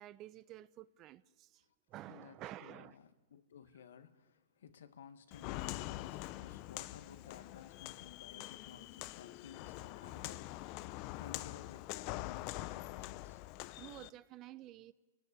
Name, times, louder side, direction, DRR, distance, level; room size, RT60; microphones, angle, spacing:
voice 1, 0.0-1.6 1.9-2.9 13.8-14.9, right 14 dB, 35° right, 0.9 m, -51 dB
voice 2, 2.1-3.0 3.3-13.4, left 8 dB, 85° left, 1.8 m, -56 dB
Walk footsteps, 5.3-14.1, left 18 dB, 40° left, 0.7 m, -44 dB
29.5 x 17.5 x 9.8 m
hypercardioid pair, 140°, 0 cm